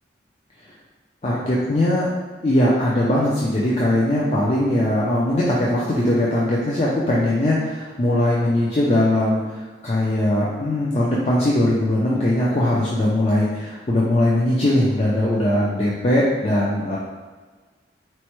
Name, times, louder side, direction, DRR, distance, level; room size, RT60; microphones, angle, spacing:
voice 1, 1.2-2.1 2.4-17.0, left 1 dB, 35° left, -6 dB, 0.4 m, -20 dB
4.3 x 2.1 x 3.0 m, 1.4 s
head